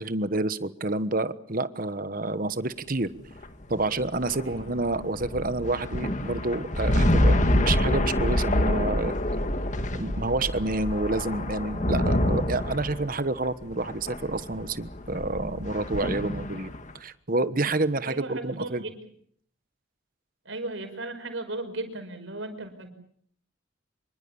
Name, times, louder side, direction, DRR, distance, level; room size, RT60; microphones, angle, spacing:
voice 1, 0.0-3.1 3.7-9.5 9.9-18.8, right 2 dB, 45° right, 13 dB, 1.2 m, -29 dB
sound 1, 3.3-16.9, left 1 dB, 40° left, 1.8 m, -27 dB
voice 2, 18.0-19.0 20.5-22.9, right 2 dB, 75° right, 7 dB, 5.6 m, -36 dB
26.0 x 24.0 x 7.1 m, 0.64 s
head